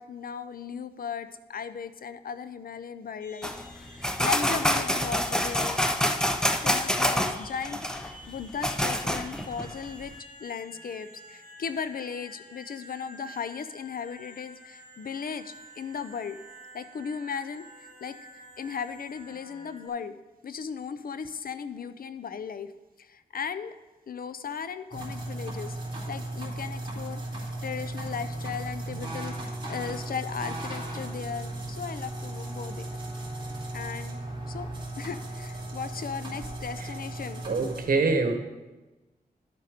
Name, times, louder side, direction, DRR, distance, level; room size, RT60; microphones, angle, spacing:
voice 1, 0.0-5.8 6.6-10.1 10.4-16.4 16.7-18.2 18.6-22.7 23.0-23.7 24.1-25.8 26.1-27.2 27.6-32.9 33.7-34.2 34.5-34.7 35.0-37.4, left 6 dB, 70° left, 12 dB, 0.6 m, -36 dB
sound 1, 3.2-19.9, equal, 50° left, 2.4 m, -50 dB
sound 2, 3.4-10.0, equal, 5° left, 0.7 m, -27 dB
sound 3, 24.9-37.8, right 2 dB, 30° right, 2.8 m, -36 dB
voice 2, 37.4-38.3, right 3 dB, 65° right, 5 dB, 1.3 m, -25 dB
11.5 x 6.7 x 5.1 m, 1.1 s
wide cardioid pair, 105°, 16 cm